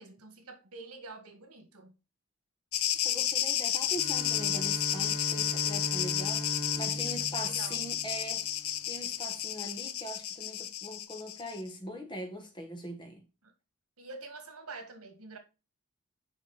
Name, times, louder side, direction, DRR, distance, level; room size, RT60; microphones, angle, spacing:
voice 1, 0.0-2.0 6.9-7.8 13.4-13.5 14.0-15.4, right 3 dB, 85° right, 1.6 m, -47 dB
sound 1, 2.7-11.6, left 11 dB, 75° left, 0.6 m, -32 dB
voice 2, 3.0-6.5 6.8-13.2, equal, 20° left, 1.2 m, -41 dB
Bowed string instrument, 3.8-8.8, equal, 45° left, 1.4 m, -39 dB
6.5 x 5.1 x 4.0 m
head